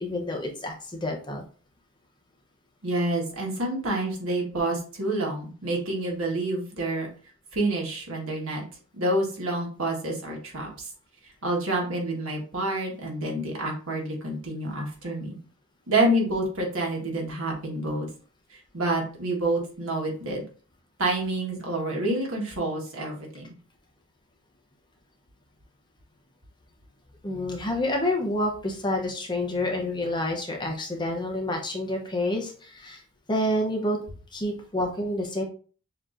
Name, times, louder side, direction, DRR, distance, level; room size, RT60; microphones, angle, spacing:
voice 1, 0.0-1.4 27.2-33.0 33.3-34.0 34.3-35.4, left 1 dB, 20° left, 1 dB, 0.7 m, -28 dB
voice 2, 2.8-7.1 7.5-8.6 8.9-10.9 11.2-15.4 15.9-18.1 18.5-20.4 21.0-23.5, right 1 dB, 65° right, -1 dB, 1.5 m, -28 dB
6.7 x 2.9 x 2.5 m, 0.40 s
head